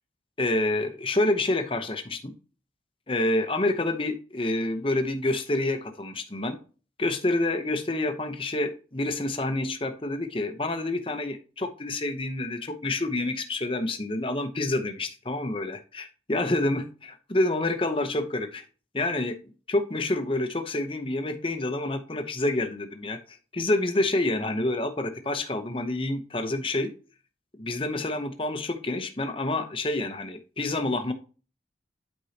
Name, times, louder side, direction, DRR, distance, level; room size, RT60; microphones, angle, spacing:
voice 1, 0.4-2.3 3.1-6.6 7.0-18.6 18.9-19.4 19.7-23.2 23.5-26.9 27.6-31.1, left 2 dB, 30° left, 8 dB, 0.8 m, -28 dB
11.5 x 4.6 x 2.9 m, 0.36 s
head